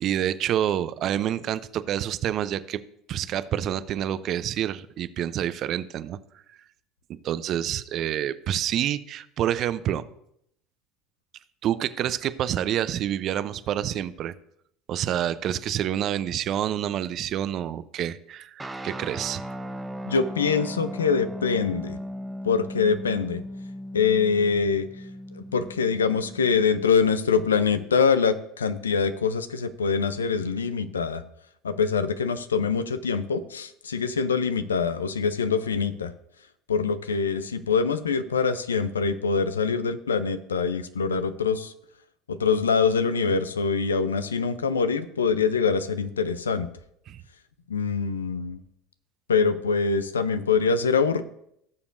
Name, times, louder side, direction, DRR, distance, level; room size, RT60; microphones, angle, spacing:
voice 1, 0.0-2.8 3.1-6.2 7.1-10.0 11.6-14.3 14.9-19.4 47.1-47.2, right 11 dB, 50° right, 14 dB, 0.6 m, -28 dB
sound 1, 18.6-26.8, equal, 10° right, 1.0 m, -37 dB
voice 2, 20.1-22.0 22.4-23.4 23.9-24.9 25.5-31.2 31.6-36.1 36.7-41.7 42.3-46.7 47.7-48.6 49.3-51.2, left 5 dB, 90° left, 12 dB, 0.6 m, -24 dB
17.0 x 7.0 x 2.6 m, 0.73 s
hypercardioid pair, 75°, 0 cm